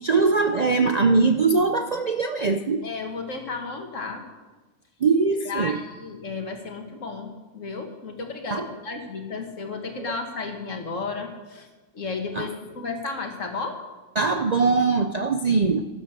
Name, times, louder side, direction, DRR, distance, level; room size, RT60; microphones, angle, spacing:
voice 1, 0.0-2.8 5.0-5.8 8.5-8.7 10.1-10.2 12.4-12.5 14.2-15.9, right 4 dB, 45° right, 7 dB, 0.5 m, -21 dB
voice 2, 2.8-4.2 5.5-11.7 11.9-13.8, left 4 dB, 75° left, 4 dB, 2.2 m, -33 dB
12.5 x 12.0 x 6.7 m, 1.2 s
omnidirectional pair, 1.3 m